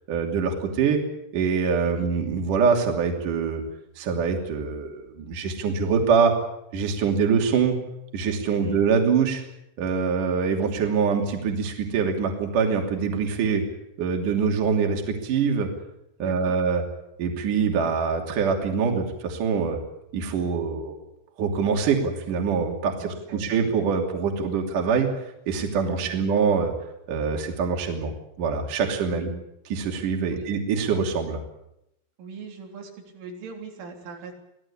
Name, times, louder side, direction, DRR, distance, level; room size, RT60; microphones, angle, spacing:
voice 1, 0.1-1.0 1.3-3.6 4.0-6.3 6.7-7.8 8.1-9.4 9.8-13.6 14.0-15.7 16.2-16.8 17.2-19.8 20.1-21.0 21.4-25.1 25.5-26.7 27.1-29.3 29.7-31.4, right 5 dB, 45° right, 2 dB, 4.0 m, -24 dB
voice 2, 16.2-16.6 23.0-23.7 26.0-26.3 29.1-29.3 30.3-30.5 32.2-34.3, right 4 dB, 80° right, 2 dB, 6.1 m, -40 dB
25.0 x 17.5 x 8.6 m, 0.83 s
omnidirectional pair, 5.5 m